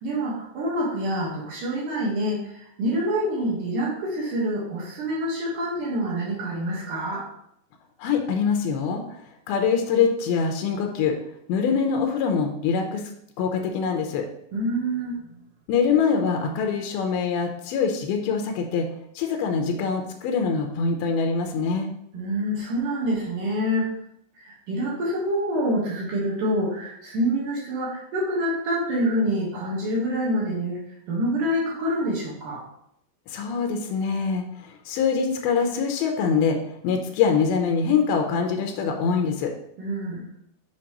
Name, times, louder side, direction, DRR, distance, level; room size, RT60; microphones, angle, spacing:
voice 1, 0.0-7.2 14.5-15.2 22.1-23.9 24.4-30.8 31.1-32.6 39.8-40.3, equal, 65° right, -4 dB, 2.3 m, -26 dB
voice 2, 8.0-9.2 9.5-11.2 11.5-13.0 13.4-14.3 15.7-18.9 19.2-21.9 33.3-36.6 36.8-39.5, left 6 dB, 90° left, 3 dB, 2.1 m, -24 dB
7.3 x 5.1 x 2.9 m, 0.74 s
omnidirectional pair, 5.1 m